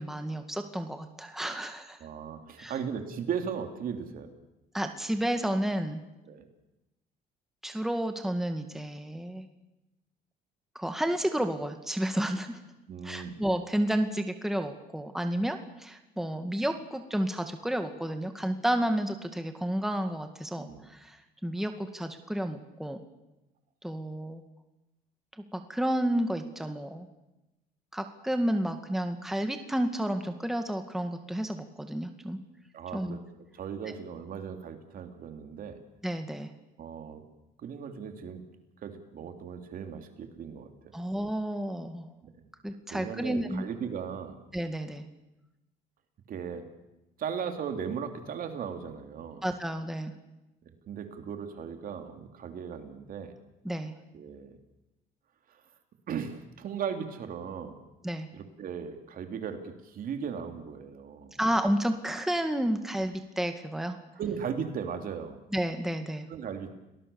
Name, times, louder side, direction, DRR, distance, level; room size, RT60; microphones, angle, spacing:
voice 1, 0.0-2.0 2.6-2.7 4.7-6.0 7.6-9.4 10.8-12.6 13.0-23.0 23.8-24.4 25.5-27.1 27.9-32.4 32.9-33.2 33.9-34.0 36.0-36.5 40.9-42.1 42.6-43.6 44.5-45.0 49.4-50.1 53.6-53.9 58.0-58.3 61.4-64.0 65.5-66.3, right 1 dB, ahead, 6 dB, 2.0 m, -31 dB
voice 2, 2.0-4.3 6.2-6.4 12.9-13.3 20.6-20.8 32.7-33.2 33.5-35.8 36.8-37.2 37.6-38.4 38.8-40.7 42.9-44.4 46.3-46.7 47.2-49.4 50.9-53.3 54.1-54.6 55.5-55.6 56.1-57.8 58.3-61.4 64.2-65.4 66.3-66.8, right 7 dB, 55° right, 6 dB, 3.2 m, -37 dB
30.0 x 19.5 x 7.1 m, 0.97 s
cardioid pair, 110°, 17 cm